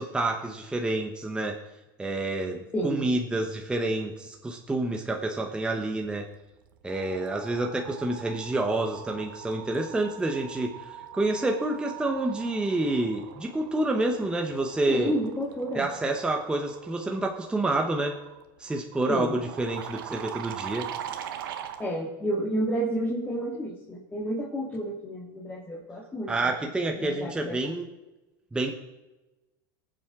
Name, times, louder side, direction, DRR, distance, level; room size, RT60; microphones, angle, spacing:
voice 1, 0.0-1.6 2.0-6.2 6.8-15.1 15.8-18.2 18.6-20.8 26.3-27.8 28.5-28.7, right 2 dB, 10° right, 2 dB, 1.0 m, -28 dB
voice 2, 2.7-3.1 14.9-15.9 19.1-19.3 21.8-26.5 27.0-27.7, right 1 dB, 15° left, -3 dB, 2.1 m, -30 dB
sound 1, 6.0-6.3 6.6-21.9, right 10 dB, 85° right, 1.2 m, -42 dB
20.0 x 7.7 x 3.7 m, 1.1 s
supercardioid pair, 125°, 11 cm